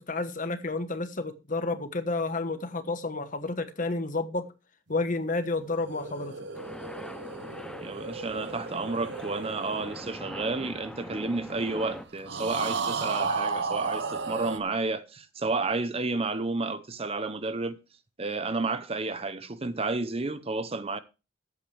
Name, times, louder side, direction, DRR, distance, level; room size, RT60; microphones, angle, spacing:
voice 1, 0.0-4.5 4.9-6.3, left 3 dB, 40° left, 1.2 m, -30 dB
sound 1, 5.6-11.2 12.3-14.6, right 4 dB, 60° right, 1.0 m, -34 dB
sound 2, 6.5-12.1, equal, 5° left, 0.7 m, -42 dB
voice 2, 7.8-17.8 18.2-21.0, right 3 dB, 30° right, 0.7 m, -31 dB
14.0 x 8.5 x 3.3 m
head